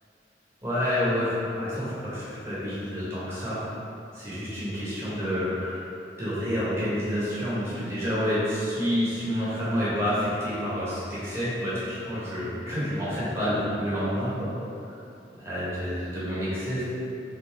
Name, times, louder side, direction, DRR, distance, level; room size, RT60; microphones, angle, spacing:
voice 1, 0.6-3.6 4.1-5.8 6.2-14.5 14.8-15.0 15.4-16.8, equal, 15° right, -11 dB, 1.3 m, -28 dB
3.6 x 3.5 x 3.7 m, 2.7 s
head